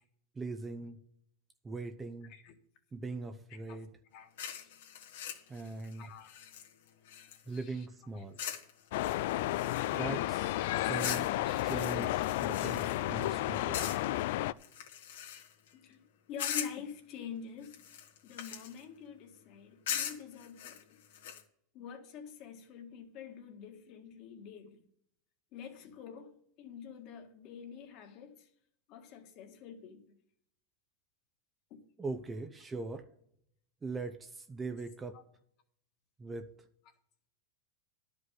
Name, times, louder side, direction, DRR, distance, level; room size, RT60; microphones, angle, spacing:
voice 1, 0.3-1.0 1.6-2.3 2.9-3.9 5.5-6.1 7.5-8.4 9.9-10.6 10.9-11.3 11.6-14.0 32.0-33.1 33.8-35.2 36.2-36.5, right 3 dB, 15° right, 8 dB, 0.6 m, -40 dB
voice 2, 4.1-4.7 6.0-6.3 7.5-7.9 8.1-8.2 10.5-11.0 11.4-11.9 12.6-12.7 13.1-13.2 15.7-16.0 16.3-17.8 18.2-21.0 21.7-24.8 25.5-28.5 28.9-30.0 31.7-31.8 35.1-35.2, left 7 dB, 45° left, 5 dB, 1.6 m, -47 dB
sound 1, 4.4-7.6 8.4-8.7 9.0-10.1 11.0-13.3 13.7-14.2 14.6-15.7 16.4-16.9 17.6-18.8 19.9-21.4, left 9 dB, 85° left, 1.7 m, -41 dB
sound 2, 8.9-14.5, left 15 dB, 65° left, 0.4 m, -32 dB
11.5 x 5.2 x 8.0 m, 0.70 s
supercardioid pair, 150°, 0 cm